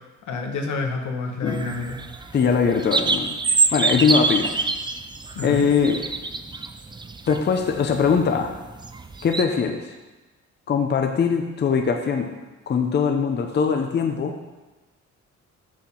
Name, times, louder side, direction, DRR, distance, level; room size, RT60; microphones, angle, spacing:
voice 1, 0.2-2.0 5.4-5.6, left 3 dB, 80° left, 3 dB, 1.2 m, -28 dB
sound 1, 1.5-9.4, right 3 dB, 15° right, 0.4 m, -26 dB
voice 2, 2.3-4.5 5.4-6.1 7.3-8.5 9.2-9.9 10.7-12.3 12.7-14.4, left 6 dB, 35° left, 4 dB, 0.7 m, -21 dB
6.4 x 6.4 x 5.7 m, 1.2 s
cardioid pair, 135°, 29 cm